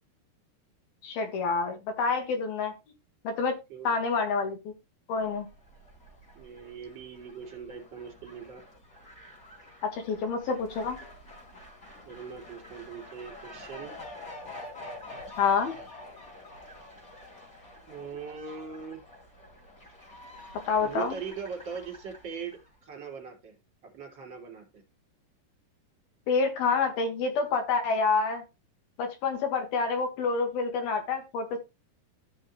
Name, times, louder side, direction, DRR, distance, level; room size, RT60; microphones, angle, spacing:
voice 1, 1.0-2.7 3.3-3.5 3.9-4.7 5.1-5.5 9.8-11.0 15.4-15.8 20.7-21.2 26.3-28.4 29.0-31.6, left 4 dB, 70° left, 6 dB, 3.6 m, -28 dB
Fowl, 5.3-22.7, left 1 dB, 20° left, 4.2 m, -47 dB
voice 2, 6.3-8.6 12.1-14.0 17.9-19.0 20.8-23.6 23.8-24.8, right 6 dB, 30° right, 0 dB, 3.4 m, -41 dB
13.5 x 6.4 x 3.1 m, 0.24 s
omnidirectional pair, 4.6 m